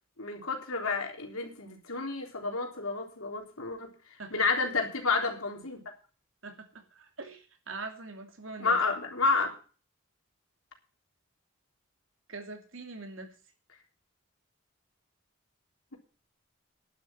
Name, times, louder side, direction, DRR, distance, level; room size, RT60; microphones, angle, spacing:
voice 1, 0.2-3.9 4.3-5.8 8.6-9.5, left 4 dB, 85° left, 3.5 m, -30 dB
voice 2, 6.4-8.8 12.3-13.3, right 3 dB, 70° right, 2.7 m, -43 dB
11.5 x 7.6 x 7.5 m
head